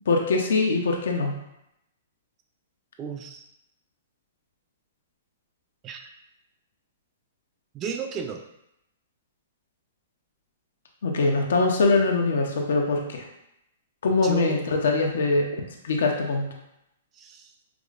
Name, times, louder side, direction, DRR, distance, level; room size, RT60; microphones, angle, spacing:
voice 1, 0.1-1.3 11.0-13.2 14.0-15.5 15.8-16.5, left 3 dB, 80° left, 2 dB, 0.6 m, -23 dB
voice 2, 3.0-3.4 5.8-6.1 7.7-8.4 14.2-14.6 17.1-17.5, right 6 dB, 25° right, 5 dB, 0.3 m, -34 dB
4.8 x 2.0 x 2.4 m, 0.83 s
hypercardioid pair, 145°, 0 cm